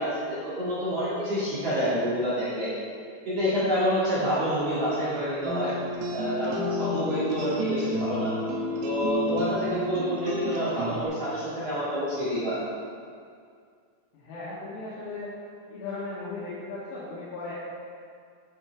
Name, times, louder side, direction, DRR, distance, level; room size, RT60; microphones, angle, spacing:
voice 1, 0.0-2.7 3.3-5.7 6.1-8.3 8.8-12.6, equal, 45° right, -12 dB, 2.1 m, -28 dB
sound 1, 5.4-11.1, left 1 dB, 75° right, 2.5 m, -31 dB
voice 2, 14.1-15.4 15.7-17.5, left 3 dB, 85° left, -9 dB, 3.8 m, -37 dB
10.5 x 5.8 x 4.5 m, 2.2 s
omnidirectional pair, 5.5 m